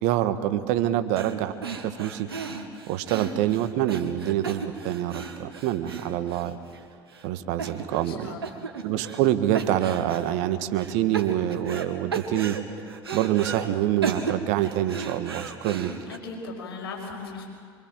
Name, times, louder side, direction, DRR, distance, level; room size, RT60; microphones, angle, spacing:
voice 1, 0.0-2.3 2.9-6.6 7.2-8.4 8.8-12.6 13.1-15.9, right 12 dB, 65° right, 10 dB, 1.6 m, -26 dB
sound 1, 1.2-1.4 1.6-6.8 7.1-7.2 7.6-8.2 8.4-9.3 9.5-10.3 10.8-11.9 12.1-13.6 14.0-16.2, right 5 dB, 90° right, 2.1 m, -35 dB
voice 2, 8.0-8.6 16.1-17.5, left 3 dB, 80° left, 1 dB, 5.8 m, -38 dB
25.5 x 25.0 x 7.6 m, 2.1 s
hypercardioid pair, 70°, 12 cm